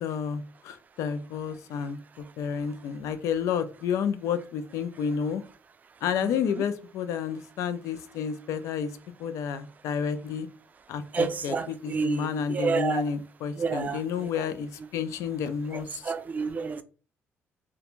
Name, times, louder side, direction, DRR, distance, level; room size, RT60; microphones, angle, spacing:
voice 1, 0.0-5.4 6.0-8.9 9.2-10.5 10.9-16.1, left 7 dB, 85° left, 0.4 m, -30 dB
voice 2, 11.1-13.0 13.6-14.3 16.0-16.8, right 5 dB, 30° right, 0.3 m, -29 dB
2.5 x 2.2 x 2.9 m
cardioid pair, 110°, 5 cm